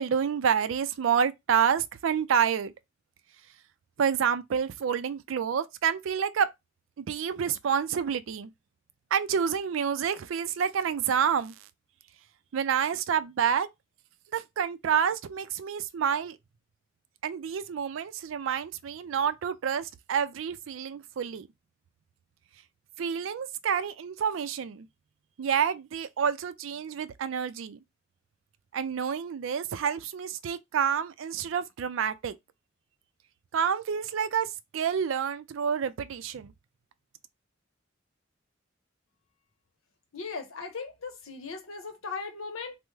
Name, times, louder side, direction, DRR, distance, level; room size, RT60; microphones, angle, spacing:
voice 1, 0.0-2.7 4.0-6.5 7.0-8.5 9.1-11.5 12.5-13.7 14.3-16.4 17.2-21.5 23.0-24.9 25.4-27.8 28.7-32.4 33.5-36.5, right 7 dB, 70° right, 0.4 m, -28 dB
voice 2, 40.1-42.8, left 4 dB, 90° left, 0.8 m, -38 dB
3.4 x 2.0 x 3.1 m
head